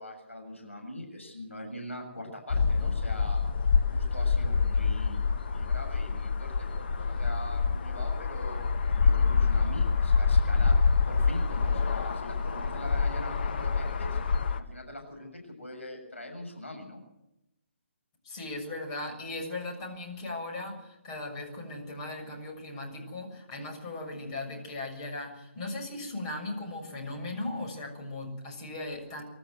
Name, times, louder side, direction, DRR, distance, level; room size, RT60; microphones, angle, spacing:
voice 1, 0.0-3.4 3.9-8.6 9.0-10.8 11.1-14.2 14.5-17.0, left 1 dB, 90° left, 2 dB, 7.2 m, -42 dB
sound 1, 2.5-14.6, left 5 dB, 50° left, 1.5 m, -26 dB
voice 2, 18.2-29.2, left 2 dB, 30° left, 2 dB, 6.9 m, -38 dB
24.5 x 13.5 x 8.0 m, 0.89 s
figure-of-eight pair, 145°, 7 cm